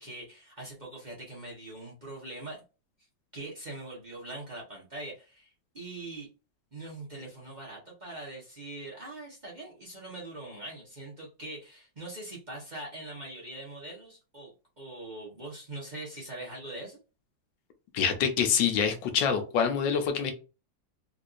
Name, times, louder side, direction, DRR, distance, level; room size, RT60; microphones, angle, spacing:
voice 1, 0.0-2.6 3.3-6.3 6.7-17.0, right 2 dB, 30° right, 1.0 m, -42 dB
voice 2, 17.9-20.3, left 7 dB, 80° left, 1.4 m, -26 dB
3.8 x 2.7 x 2.5 m
omnidirectional pair, 2.0 m